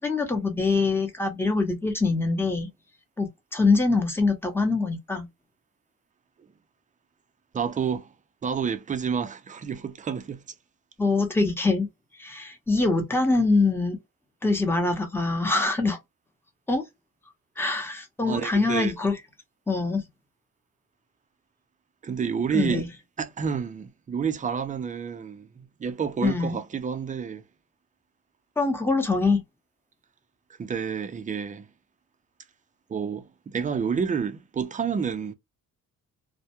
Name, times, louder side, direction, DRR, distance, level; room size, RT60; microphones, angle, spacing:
voice 1, 0.0-2.7 3.2-5.3 11.0-11.9 12.2-14.0 14.4-16.0 16.7-16.8 17.6-19.2 19.7-20.0 22.5-22.9 26.2-26.6 28.6-29.4, left 3 dB, 5° left, 0.7 m, -24 dB
voice 2, 7.5-8.1 8.4-10.4 18.3-19.0 22.0-22.8 23.2-25.5 25.8-27.4 30.6-31.7 32.9-35.3, right 6 dB, 25° right, 0.4 m, -29 dB
2.1 x 2.1 x 2.8 m
cardioid pair, 110°, 34 cm